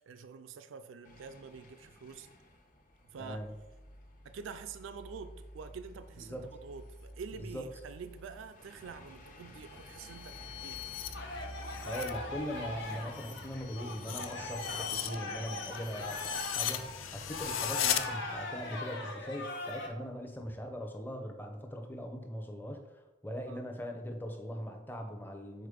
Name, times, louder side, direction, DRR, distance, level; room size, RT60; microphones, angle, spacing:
voice 1, 0.0-2.3 3.1-3.4 4.2-10.8 23.5-23.6, right 5 dB, 75° right, 10 dB, 0.4 m, -47 dB
sound 1, 1.0-18.8, equal, 40° left, 0.9 m, -51 dB
voice 2, 3.2-3.5 6.2-6.4 7.5-7.6 11.8-25.7, equal, 10° left, 3 dB, 0.7 m, -41 dB
sound 2, 9.8-12.2 12.5-18.0, left 10 dB, 80° left, 0.5 m, -38 dB
sound 3, 11.1-19.9, left 2 dB, 65° left, 1.1 m, -41 dB
6.6 x 4.2 x 5.0 m, 1.1 s
head